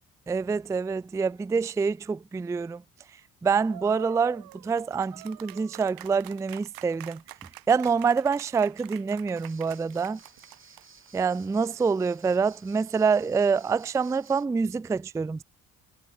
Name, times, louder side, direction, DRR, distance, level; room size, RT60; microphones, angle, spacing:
voice 1, 0.3-2.8 3.4-7.2 7.7-10.2 11.1-15.4, right 5 dB, 10° right, 0.3 m, -26 dB
sound 1, 3.6-11.1, right 16 dB, 75° right, 1.2 m, -46 dB
sound 2, 9.3-14.5, right 5 dB, 35° right, 6.2 m, -54 dB
supercardioid pair, 80°, 35 cm